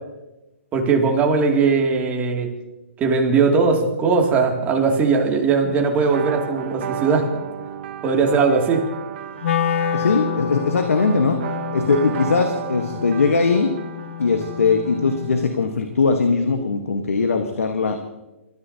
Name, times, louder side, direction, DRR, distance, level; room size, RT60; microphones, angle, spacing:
voice 1, 0.7-2.5 3.0-7.3 8.0-8.8, right 4 dB, 20° right, 1 dB, 2.5 m, -19 dB
sound 1, 6.0-15.6, right 9 dB, 50° right, 1.1 m, -34 dB
Wind instrument woodwind instrument, 9.4-15.5, left 9 dB, 65° left, 0.9 m, -29 dB
voice 2, 9.9-11.4 11.7-13.7 14.2-18.1, left 4 dB, 85° left, 5 dB, 1.3 m, -20 dB
27.0 x 14.0 x 2.8 m, 1.0 s
hypercardioid pair, 135°, 7 cm